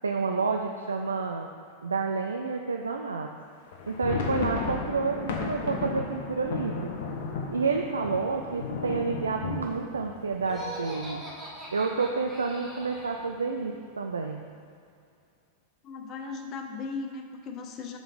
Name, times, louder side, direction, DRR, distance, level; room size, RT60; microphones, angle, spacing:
voice 1, 0.0-1.5 1.8-3.3 3.9-6.9 7.5-11.2 11.7-14.4, right 4 dB, 75° right, 3 dB, 0.3 m, -29 dB
sound 1, 3.7-11.4 11.7-11.8 12.1-12.3 12.8-13.3, left 4 dB, 55° left, 0.9 m, -34 dB
Laughter, 10.4-13.3, equal, 10° right, 1.3 m, -41 dB
voice 2, 15.8-18.0, left 4 dB, 35° left, 4 dB, 0.5 m, -37 dB
7.0 x 3.8 x 5.2 m, 2.4 s
figure-of-eight pair, 90°, 0 cm